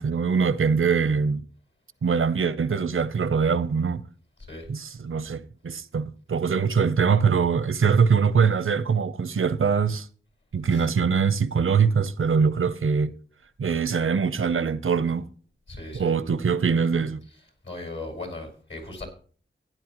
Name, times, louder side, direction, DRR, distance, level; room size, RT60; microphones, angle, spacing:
voice 1, 0.0-1.4 2.0-4.0 4.7-10.1 10.5-13.1 13.6-15.3 15.9-17.2, right 6 dB, 85° right, 0.7 m, -23 dB
voice 2, 15.7-16.1 17.6-19.1, left 2 dB, 65° left, 4.7 m, -37 dB
16.0 x 10.0 x 3.0 m
wide cardioid pair, 65°, 20 cm